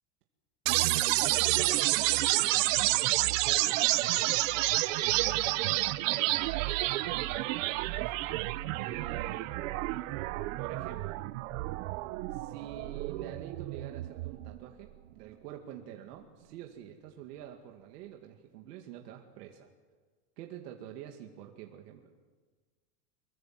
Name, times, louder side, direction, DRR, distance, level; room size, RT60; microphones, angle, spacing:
sound 1, 0.7-14.6, right 18 dB, 55° right, 0.8 m, -29 dB
voice 1, 0.7-3.8 4.1-4.4 5.0-8.1 8.8-9.6 10.6-11.2 12.3-19.7 20.4-22.1, right 10 dB, 90° right, 2 dB, 2.3 m, -47 dB
25.0 x 22.5 x 7.5 m, 1.4 s
supercardioid pair, 180°, 46 cm